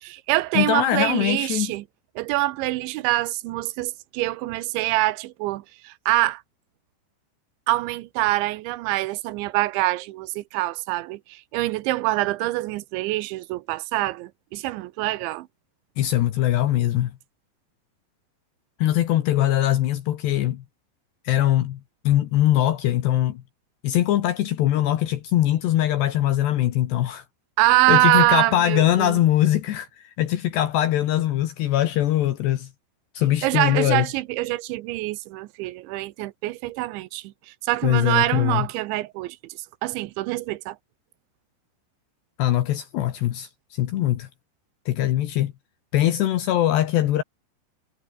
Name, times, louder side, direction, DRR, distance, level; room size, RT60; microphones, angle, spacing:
voice 1, 0.0-1.8 2.2-6.4 7.7-15.5 27.6-29.2 33.4-40.8, right 18 dB, 90° right, 3.1 m, -25 dB
voice 2, 0.6-1.7 16.0-17.1 18.8-20.6 21.3-23.4 23.8-27.2 27.9-32.7 33.2-34.1 37.8-38.7 42.4-44.3 44.9-45.5 45.9-47.2, left 13 dB, 70° left, 3.4 m, -22 dB
omnidirectional pair, 5.4 m